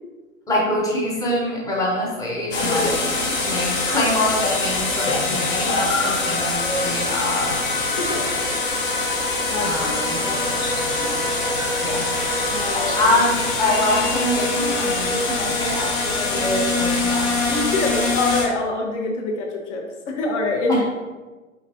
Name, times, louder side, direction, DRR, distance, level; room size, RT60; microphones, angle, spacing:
voice 1, 0.5-2.9 3.4-7.6 8.1-8.3 9.6-10.2 11.8-12.1 12.7-17.3 20.7-20.8, left 1 dB, 10° left, -3 dB, 0.7 m, -24 dB
sound 1, 2.5-18.4, left 3 dB, 40° left, 1.5 m, -24 dB
voice 2, 2.6-3.0 5.1-5.2 7.9-8.3 9.5-9.7 10.2-10.4 11.0-11.2 12.5-13.1 17.4-20.8, left 3 dB, 60° left, 1 dB, 1.0 m, -26 dB
sound 2, 5.0-15.0, left 2 dB, 75° left, 1.3 m, -34 dB
5.1 x 3.3 x 2.6 m, 1.3 s
hypercardioid pair, 130°, 40 cm